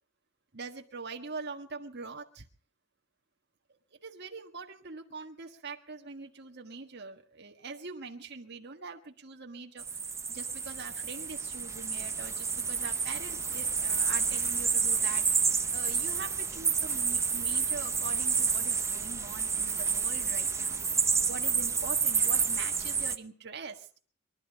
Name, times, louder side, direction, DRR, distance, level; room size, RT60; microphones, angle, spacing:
voice 1, 0.5-2.5 4.0-9.8 10.3-20.8 21.3-24.0, right 4 dB, 55° right, 4 dB, 1.5 m, -43 dB
sound 1, 9.8-23.2, right 5 dB, 15° right, 0.7 m, -29 dB
23.5 x 12.0 x 5.2 m, 0.43 s
head